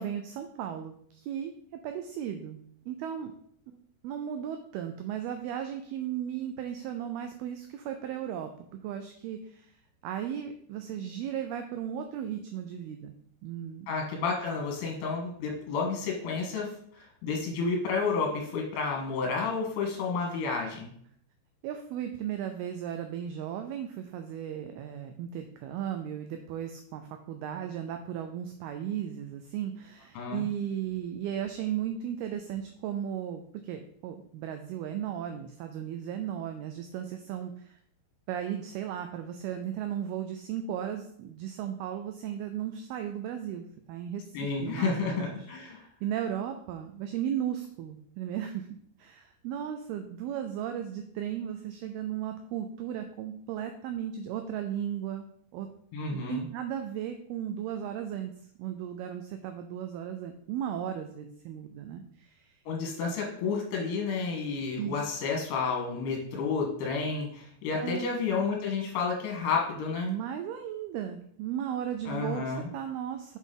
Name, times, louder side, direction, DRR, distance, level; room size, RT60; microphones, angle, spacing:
voice 1, 0.0-1.5 1.8-3.3 4.0-8.5 8.8-9.7 10.0-13.1 13.4-13.9 21.6-37.8 38.3-45.5 46.0-48.7 49.0-55.7 56.1-58.3 58.6-62.6 64.8-65.0 65.4-65.5 67.7-68.1 70.1-73.4, right 9 dB, 85° right, 6 dB, 2.2 m, -36 dB
voice 2, 13.9-20.9 30.2-30.5 44.3-45.8 55.9-56.5 62.7-70.1 72.1-72.7, left 4 dB, 70° left, 0 dB, 3.2 m, -31 dB
7.1 x 6.1 x 3.7 m, 0.64 s
omnidirectional pair, 5.0 m